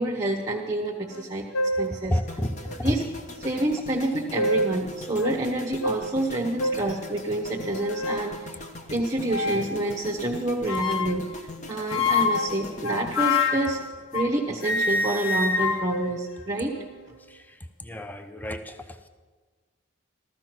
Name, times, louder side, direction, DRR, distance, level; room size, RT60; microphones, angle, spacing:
voice 1, 0.0-1.5 1.8-2.2 2.8-3.0 3.4-8.5 8.9-13.8 14.1-16.8, right 1 dB, 15° right, 0 dB, 1.2 m, -28 dB
sound 1, 1.1-1.2 1.5-1.9 2.7-2.8 4.0-4.8 5.2-5.4 5.8-6.0 6.6-6.9 7.5-8.3 9.3-9.7 10.7-11.3 11.9-14.4 14.6-17.0, left 3 dB, 80° left, 1.3 m, -27 dB
voice 2, 2.1-2.9 17.3-19.1, equal, 10° left, 8 dB, 0.6 m, -31 dB
sound 2, 2.3-14.5 14.7-15.0, left 2 dB, 35° left, 1.1 m, -41 dB
14.5 x 14.5 x 6.0 m, 1.4 s
head